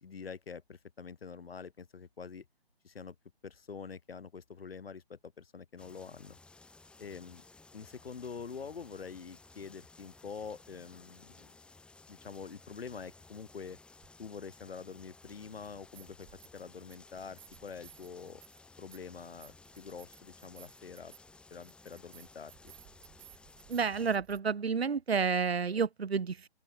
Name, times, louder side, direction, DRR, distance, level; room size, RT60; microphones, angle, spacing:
voice 1, 0.0-2.4 2.8-3.1 3.4-6.4 7.0-7.4 7.7-11.5 12.1-13.8 14.2-16.3 16.5-18.4 18.8-21.1 21.5-22.7, left 5 dB, 65° left, 1.3 m, -46 dB
sound 1, 5.8-24.2, left 3 dB, 5° left, 3.4 m, -57 dB
sound 2, 14.0-14.1 15.7-16.6 16.9-24.4, right 22 dB, 15° right, 4.0 m, -59 dB
voice 2, 23.7-26.5, right 5 dB, 70° right, 1.2 m, -30 dB
open air
figure-of-eight pair, 150°, 32 cm